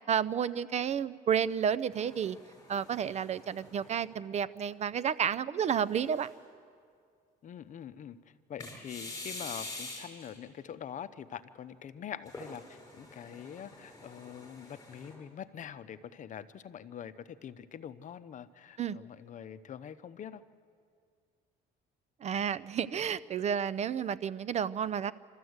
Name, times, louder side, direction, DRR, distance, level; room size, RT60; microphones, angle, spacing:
voice 1, 0.1-2.4 2.7-6.3 18.8-19.0 22.2-25.1, right 8 dB, 40° right, 17 dB, 0.5 m, -31 dB
sound 1, 1.9-4.5 5.0-5.1 5.8-6.5 8.6-10.4 12.3-15.1, left 2 dB, 20° left, 5.3 m, -46 dB
voice 2, 7.4-20.4, left 9 dB, 50° left, 13 dB, 0.8 m, -44 dB
27.0 x 13.5 x 8.0 m, 2.2 s
cardioid pair, 110°, 17 cm